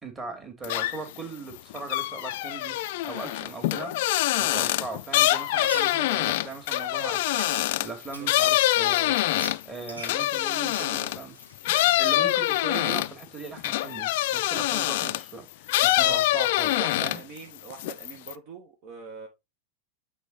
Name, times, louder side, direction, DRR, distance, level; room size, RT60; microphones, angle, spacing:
voice 1, 0.0-2.8 3.0-4.0 4.4-7.4 7.8-9.2 9.6-11.3 12.0-17.2, right 3 dB, 20° right, 2.7 m, -39 dB
sound 1, 0.6-1.2 1.5-11.2 11.6-15.3 15.7-17.4 17.7-18.3, left 16 dB, 50° left, 0.4 m, -25 dB
Frying (food), 5.1-8.3 8.7-12.0, right 1 dB, 80° right, 2.2 m, -41 dB
voice 2, 16.8-19.3, right 5 dB, 45° right, 1.4 m, -41 dB
9.0 x 4.0 x 4.1 m
figure-of-eight pair, 90°, 0 cm